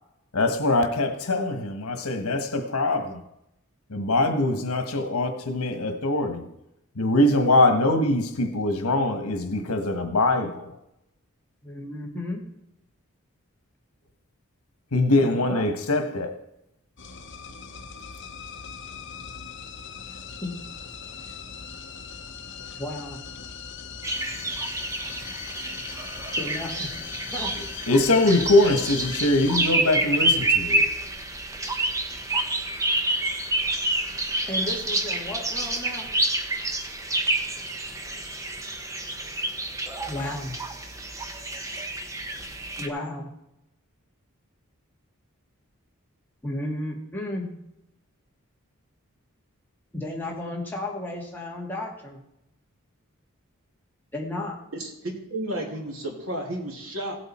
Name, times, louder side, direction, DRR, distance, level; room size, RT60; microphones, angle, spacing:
voice 1, 0.3-3.2 3.9-6.5 6.9-10.8 14.9-16.3 27.9-30.9, left 2 dB, 85° left, 1.4 m, -23 dB
voice 2, 11.6-12.4 15.2-15.7 20.4-20.5 22.7-23.2 26.4-26.9 27.3-27.5 34.5-36.1 40.1-40.6 42.8-43.3 46.4-47.5 49.9-52.2 54.1-54.6, left 1 dB, 10° left, 2.3 m, -33 dB
sound 1, 17.0-29.7, left 6 dB, 50° left, 0.9 m, -39 dB
sound 2, 24.0-42.9, right 1 dB, 15° right, 0.8 m, -28 dB
voice 3, 54.7-57.2, right 1 dB, 65° right, 2.7 m, -32 dB
16.5 x 8.0 x 4.4 m
head